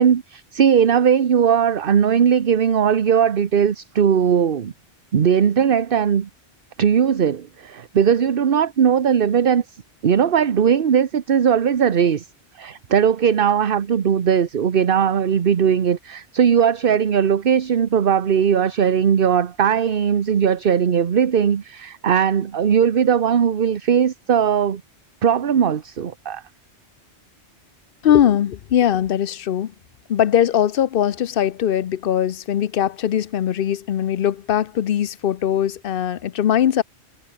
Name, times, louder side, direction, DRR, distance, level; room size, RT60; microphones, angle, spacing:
voice 1, 0.0-4.7 5.1-6.3 6.8-9.6 10.0-12.3 12.5-24.8 25.2-26.4, right 8 dB, 55° right, 1.1 m, -18 dB
voice 2, 28.0-29.7 30.1-36.8, left 10 dB, 60° left, 0.8 m, -20 dB
omnidirectional pair, 1.1 m